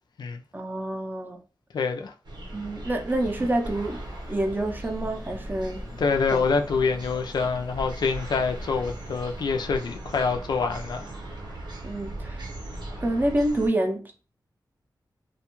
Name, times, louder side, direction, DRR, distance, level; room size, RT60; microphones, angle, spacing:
voice 1, 0.5-1.4 2.5-5.9 6.3-6.4 11.8-12.4 13.0-14.2, right 1 dB, 25° right, 0.5 m, -28 dB
voice 2, 1.7-2.1 6.0-11.1, left 5 dB, 70° left, 0.3 m, -26 dB
sound 1, 2.2-13.7, right 1 dB, 80° right, 0.8 m, -38 dB
sound 2, 3.6-9.5, equal, ahead, 0.8 m, -45 dB
2.5 x 2.3 x 2.9 m
wide cardioid pair, 125°, 8 cm